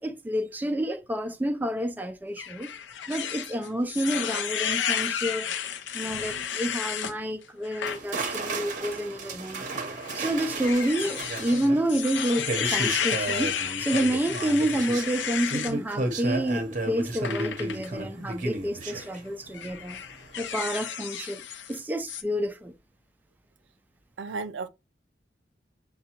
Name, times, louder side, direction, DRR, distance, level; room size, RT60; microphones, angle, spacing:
voice 1, 0.0-2.7 3.1-5.5 5.9-9.7 10.1-13.5 13.8-20.0 20.4-21.4 21.7-22.7, right 1 dB, 10° right, 0.3 m, -29 dB
sound 1, 2.4-7.1 7.6-8.0 8.4-8.6 9.6-15.8 17.2-17.9 18.8-19.1 19.5-21.8 22.1-22.2, left 8 dB, 85° left, 0.5 m, -32 dB
sound 2, 7.8-19.9 20.2-20.5, right 2 dB, 45° right, 0.7 m, -33 dB
voice 2, 24.2-24.7, right 4 dB, 90° right, 0.5 m, -34 dB
6.6 x 2.2 x 2.8 m
head